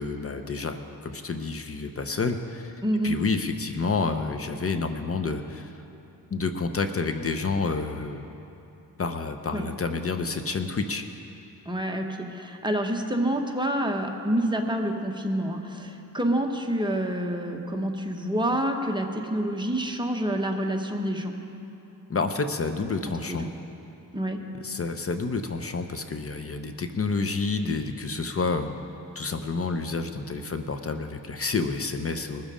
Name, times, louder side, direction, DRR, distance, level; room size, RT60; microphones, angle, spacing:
voice 1, 0.0-5.7 6.3-8.3 9.0-11.0 22.1-23.5 24.5-28.8 29.1-32.5, left 4 dB, 35° left, 7 dB, 0.7 m, -29 dB
voice 2, 2.8-3.2 9.5-9.7 11.7-21.3 23.3-23.4 24.1-24.4, right 1 dB, 10° right, 2 dB, 1.1 m, -27 dB
20.0 x 7.3 x 5.0 m, 2.8 s
cardioid pair, 85°, 40 cm